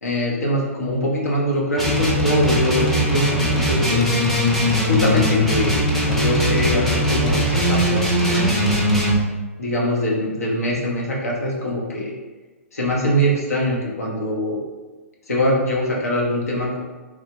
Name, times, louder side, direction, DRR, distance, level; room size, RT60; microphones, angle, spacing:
voice 1, 0.0-4.1 4.8-8.6 9.6-12.1 12.7-14.6 15.3-16.8, equal, 80° left, -3 dB, 0.9 m, -23 dB
sound 1, 1.8-9.2, equal, 5° left, 0.5 m, -20 dB
3.2 x 2.2 x 2.9 m, 1.2 s
figure-of-eight pair, 120°, 8 cm